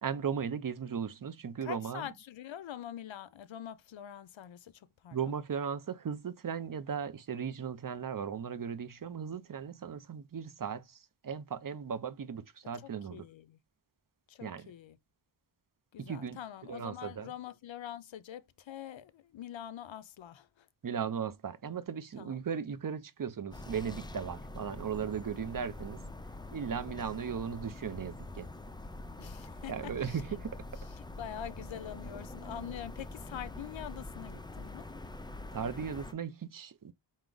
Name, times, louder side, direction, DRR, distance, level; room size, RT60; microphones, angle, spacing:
voice 1, 0.0-2.1 5.1-13.3 14.4-14.7 16.0-16.4 16.7-17.3 20.8-26.0 26.5-28.5 29.7-30.6 35.5-36.9, right 7 dB, 45° right, 0.6 m, -37 dB
voice 2, 1.6-5.4 12.8-13.6 14.3-15.0 15.9-20.7 22.2-22.5 26.0-26.1 29.2-30.2 31.2-34.9, left 10 dB, 80° left, 0.6 m, -45 dB
sound 1, 23.5-36.1, left 2 dB, 10° left, 0.4 m, -45 dB
4.6 x 2.1 x 3.9 m
wide cardioid pair, 70°, 45 cm